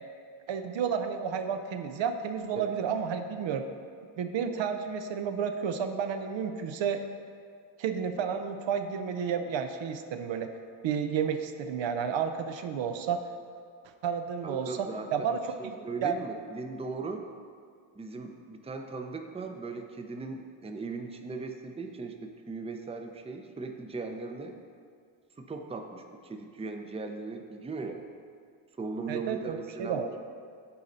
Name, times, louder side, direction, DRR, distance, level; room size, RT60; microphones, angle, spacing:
voice 1, 0.5-3.6 4.2-7.0 7.8-10.5 10.8-13.2 14.0-15.4 15.6-15.8 16.0-16.1 29.1-30.1, right 7 dB, 70° right, 7 dB, 0.6 m, -31 dB
voice 2, 14.4-17.2 17.9-24.5 25.4-28.0 28.8-30.2, right 4 dB, 15° right, 5 dB, 0.5 m, -38 dB
8.4 x 4.1 x 3.9 m, 2.2 s
cardioid pair, 65°, 48 cm